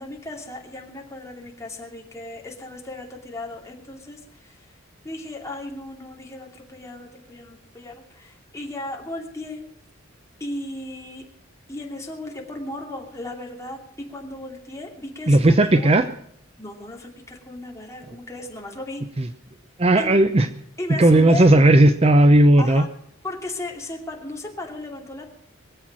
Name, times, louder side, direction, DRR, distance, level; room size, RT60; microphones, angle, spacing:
voice 1, 0.0-4.7 5.0-9.6 10.4-11.3 11.7-15.9 16.6-19.0 20.0-20.2 20.8-21.5 22.6-22.9 23.2-25.3, left 1 dB, 15° left, 0 dB, 2.6 m, -36 dB
voice 2, 15.3-16.1 19.2-19.3 19.8-20.5 21.0-22.8, right 1 dB, 30° right, 10 dB, 0.6 m, -15 dB
22.5 x 7.9 x 6.2 m, 0.69 s
head